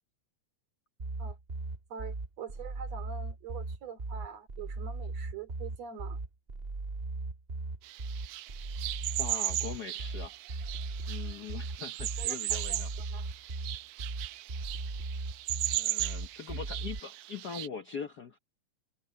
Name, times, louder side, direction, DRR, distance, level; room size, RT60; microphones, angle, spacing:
sound 1, 1.0-17.0, right 3 dB, 30° right, 1.2 m, -38 dB
voice 1, 1.9-6.2 12.2-12.4 12.7-13.3, right 6 dB, 60° right, 3.9 m, -44 dB
sound 2, 7.8-17.7, right 15 dB, 80° right, 1.5 m, -37 dB
voice 2, 9.2-10.3 11.1-12.9 15.7-18.4, left 6 dB, 70° left, 0.9 m, -42 dB
omnidirectional pair, 3.4 m